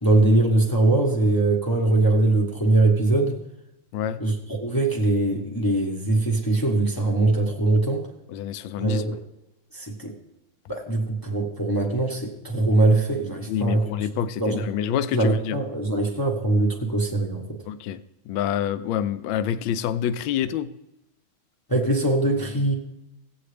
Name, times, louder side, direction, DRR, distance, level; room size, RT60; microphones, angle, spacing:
voice 1, 0.0-3.4 4.2-8.1 8.8-9.2 9.7-10.2 10.7-13.9 14.4-14.7 15.1-17.6 21.7-22.7, right 2 dB, 20° left, -1 dB, 0.6 m, -22 dB
voice 2, 8.3-9.0 13.5-15.6 17.7-18.0 18.3-20.7, left 9 dB, 75° left, 14 dB, 1.2 m, -27 dB
16.5 x 8.1 x 3.3 m, 0.91 s
omnidirectional pair, 2.3 m